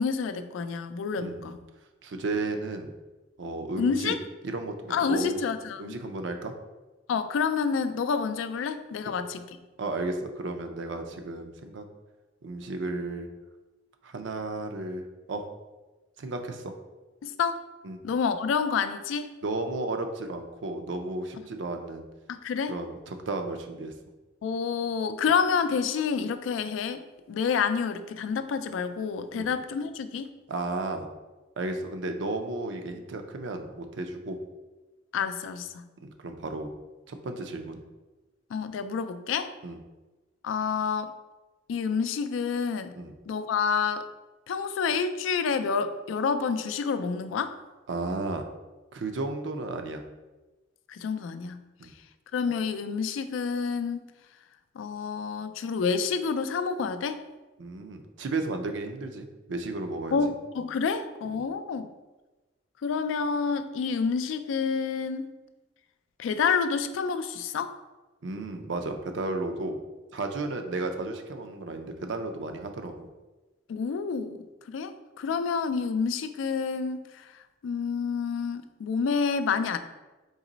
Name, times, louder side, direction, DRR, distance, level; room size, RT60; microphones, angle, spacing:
voice 1, 0.0-1.6 3.8-4.2 4.9-6.0 7.1-9.5 17.2-17.6 18.0-19.3 22.3-22.7 24.4-27.0 27.3-30.3 35.1-35.9 38.5-39.5 40.4-41.1 41.7-43.0 43.3-44.0 44.5-47.5 50.9-51.6 52.3-54.1 54.8-57.2 60.1-61.9 62.8-65.3 66.2-67.7 73.7-74.4 74.7-77.3 77.6-79.8, left 5 dB, 85° left, 10 dB, 0.3 m, -28 dB
voice 2, 1.2-1.5 2.0-2.9 3.4-4.1 4.4-5.4 5.8-6.5 9.8-11.9 12.4-13.3 14.0-15.0 15.3-15.5 16.2-16.7 17.8-18.0 19.4-22.1 22.7-23.9 29.3-29.5 30.5-31.1 31.6-34.4 36.0-36.7 37.1-37.8 39.6-39.8 43.0-43.2 47.9-48.5 48.9-50.0 51.8-51.9 57.6-60.2 61.3-61.4 68.2-69.8 70.1-73.1, right 2 dB, 70° right, 6 dB, 0.5 m, -33 dB
4.0 x 3.0 x 3.9 m, 1.2 s
head